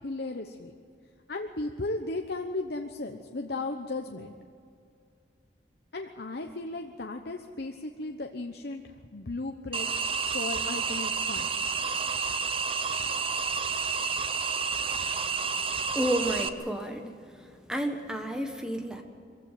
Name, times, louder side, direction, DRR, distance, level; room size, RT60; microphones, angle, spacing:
voice 1, 0.0-0.7 1.3-4.3 5.9-8.8 9.1-9.9 10.3-11.5, left 2 dB, 60° left, 4 dB, 1.0 m, -35 dB
sound 1, 9.7-16.5, right 5 dB, 30° right, 0.9 m, -30 dB
voice 2, 15.9-19.0, right 1 dB, 5° right, 4 dB, 1.4 m, -31 dB
23.0 x 16.0 x 9.2 m, 2.4 s
head